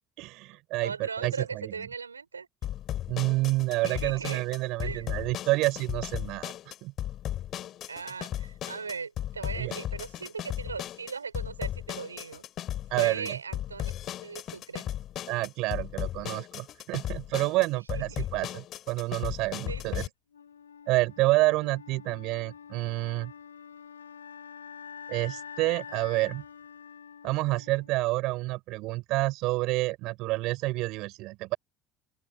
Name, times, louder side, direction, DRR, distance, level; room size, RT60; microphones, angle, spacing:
voice 1, 0.2-1.7 3.1-6.9 9.6-9.7 12.9-13.4 15.3-20.0 20.9-23.3 25.1-26.4 27.2-31.6, right 20 dB, 60° right, 7.9 m, -29 dB
voice 2, 0.8-2.5 3.9-4.4 4.8-5.1 7.9-12.4 12.9-13.9 14.2-14.9 17.9-18.3 19.7-20.1, right 5 dB, 90° right, 6.0 m, -38 dB
sound 1, 2.6-20.1, left 12 dB, 50° left, 4.5 m, -36 dB
Wind instrument woodwind instrument, 20.3-28.3, left 7 dB, 85° left, 7.1 m, -46 dB
open air
figure-of-eight pair, 60°, 0 cm